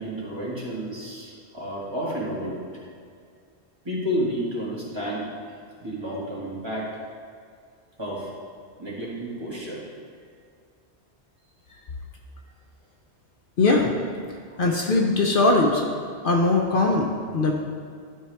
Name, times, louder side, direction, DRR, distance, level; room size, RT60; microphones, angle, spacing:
voice 1, 0.0-2.9 3.8-5.3 5.8-6.9 8.0-8.3 8.8-9.9, equal, 25° right, -7 dB, 1.9 m, -31 dB
voice 2, 13.6-13.9 14.6-15.8 16.2-17.5, left 2 dB, 60° left, 0 dB, 0.9 m, -20 dB
12.0 x 4.7 x 3.4 m, 2.2 s
omnidirectional pair, 1.1 m